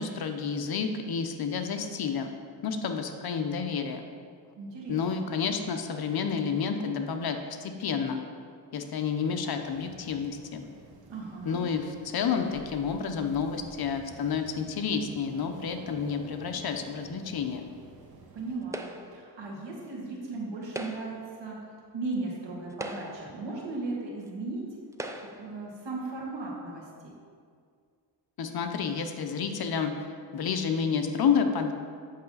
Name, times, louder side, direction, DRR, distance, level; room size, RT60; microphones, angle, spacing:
voice 1, 0.0-2.3 2.6-4.1 4.9-8.2 8.7-10.6 11.4-17.7 28.4-30.1 30.3-31.7, left 6 dB, 55° left, 6 dB, 0.7 m, -30 dB
voice 2, 4.6-5.3 11.1-11.6 18.3-21.6 21.9-24.6 25.4-27.1, right 3 dB, 75° right, -3 dB, 1.9 m, -36 dB
sound 1, 9.6-18.6, right 3 dB, 55° right, 1.1 m, -50 dB
sound 2, 18.7-19.3 20.6-21.3 22.1-22.2 22.7-23.4 24.3-24.4 24.9-25.5, right 1 dB, 10° right, 0.3 m, -39 dB
8.2 x 5.8 x 4.0 m, 2.1 s
cardioid pair, 100°, 44 cm